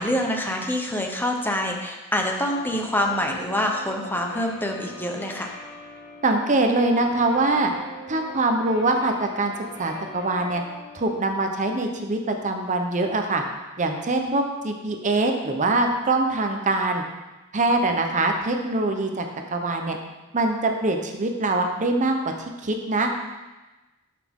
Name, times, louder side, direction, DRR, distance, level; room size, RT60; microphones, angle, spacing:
voice 1, 0.0-5.5, left 1 dB, 10° left, 2 dB, 0.8 m, -26 dB
Guitar, 2.4-11.1, equal, 35° left, 1.7 m, -42 dB
voice 2, 6.2-7.7 8.1-9.5 9.8-10.6 10.9-13.4 13.8-17.0 17.5-19.2 19.5-20.0 20.3-23.1, right 2 dB, 35° right, 4 dB, 0.8 m, -23 dB
12.5 x 5.9 x 3.6 m, 1.1 s
head